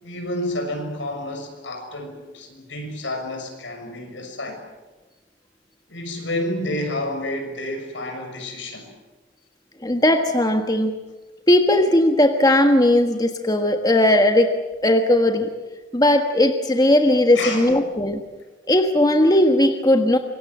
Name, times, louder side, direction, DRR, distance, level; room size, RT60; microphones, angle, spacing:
voice 1, 0.0-4.6 5.9-8.9 17.3-17.7, left 1 dB, 80° left, 4 dB, 6.4 m, -30 dB
voice 2, 9.8-10.9 11.5-14.5 14.8-15.5 15.9-18.2 18.7-20.2, left 1 dB, 20° left, 5 dB, 1.5 m, -17 dB
26.0 x 22.5 x 7.9 m, 1.2 s
head